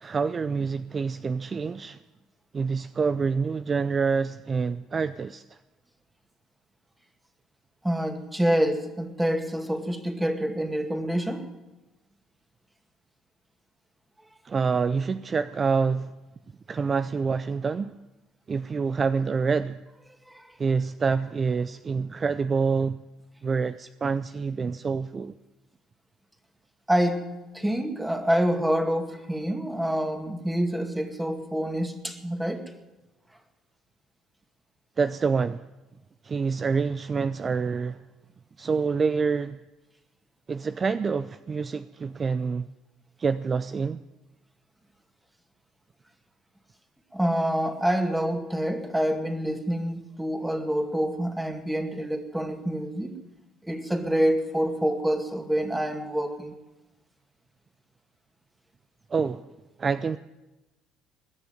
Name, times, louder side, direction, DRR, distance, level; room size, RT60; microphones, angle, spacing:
voice 1, 0.0-2.0 2.5-5.6 14.4-16.1 16.7-17.9 18.5-19.8 20.6-23.0 23.4-25.3 35.0-35.6 36.2-38.0 38.6-39.6 40.5-42.7 43.2-44.0 59.1-59.5 59.8-60.2, right 5 dB, 35° right, 0.5 m, -27 dB
voice 2, 7.8-11.5 20.3-20.5 26.9-27.3 27.5-32.7 47.1-53.2 53.6-56.6, equal, 10° right, 2.1 m, -27 dB
20.5 x 7.0 x 9.3 m
supercardioid pair, 70°, 0 cm